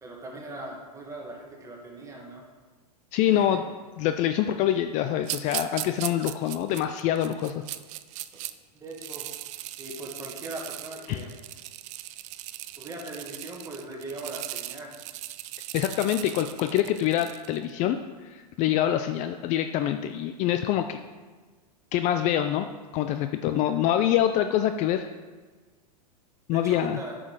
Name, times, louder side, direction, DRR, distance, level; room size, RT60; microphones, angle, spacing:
voice 1, 0.0-2.4 3.3-3.6 8.8-9.3 9.8-11.3 12.7-14.9 23.6-23.8 26.5-27.1, right 2 dB, 15° right, 0 dB, 1.9 m, -39 dB
voice 2, 3.1-3.7 4.0-7.6 11.1-11.2 15.7-21.0 21.9-22.7 22.9-25.1 26.5-27.0, left 11 dB, 35° left, 8 dB, 0.4 m, -25 dB
sound 1, 5.2-8.5 8.9-17.6, right 15 dB, 35° right, 0.4 m, -38 dB
8.7 x 6.2 x 4.9 m, 1.3 s
hypercardioid pair, 115°, 21 cm